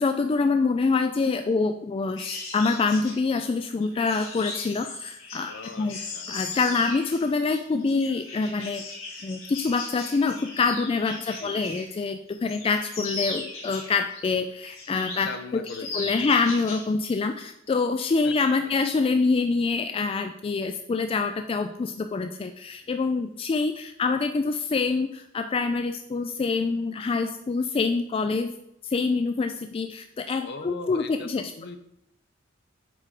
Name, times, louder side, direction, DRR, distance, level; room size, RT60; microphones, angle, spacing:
voice 1, 0.0-5.5 5.8-6.0 6.3-8.8 9.2-15.3 15.5-15.6 15.9-28.5 28.8-31.4, left 4 dB, 30° left, 7 dB, 0.3 m, -26 dB
sound 1, 2.2-12.0 12.3-14.2 14.6-15.4 15.7-16.9 17.2-17.4, left 3 dB, 75° left, 2.4 m, -37 dB
voice 2, 5.5-6.3 11.3-11.6 15.2-16.4 18.2-18.3 18.6-18.7 30.4-31.8, left 4 dB, 55° left, 9 dB, 0.7 m, -40 dB
8.5 x 3.8 x 4.8 m, 0.78 s
head